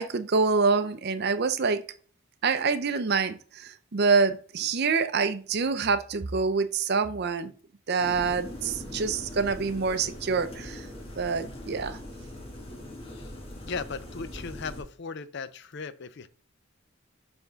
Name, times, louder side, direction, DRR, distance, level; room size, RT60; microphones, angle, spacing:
voice 1, 0.0-1.8 2.4-7.5 7.9-10.8 11.2-12.0, right 4 dB, 50° right, 0.6 m, -26 dB
sound 1, 8.0-14.8, left 1 dB, 25° left, 1.3 m, -41 dB
voice 2, 13.6-16.3, left 5 dB, 55° left, 0.5 m, -37 dB
6.9 x 3.6 x 3.9 m
head